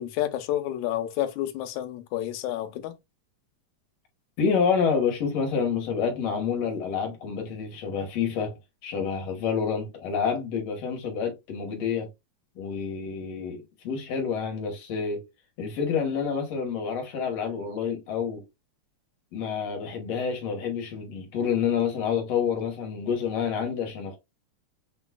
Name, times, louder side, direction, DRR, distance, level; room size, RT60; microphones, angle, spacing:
voice 1, 0.0-3.0, left 12 dB, 85° left, 2.1 m, -30 dB
voice 2, 4.4-8.5 8.8-12.1 12.6-15.2 15.6-18.4 19.3-24.2, left 6 dB, 65° left, 2.2 m, -28 dB
6.3 x 3.0 x 2.2 m
omnidirectional pair, 3.3 m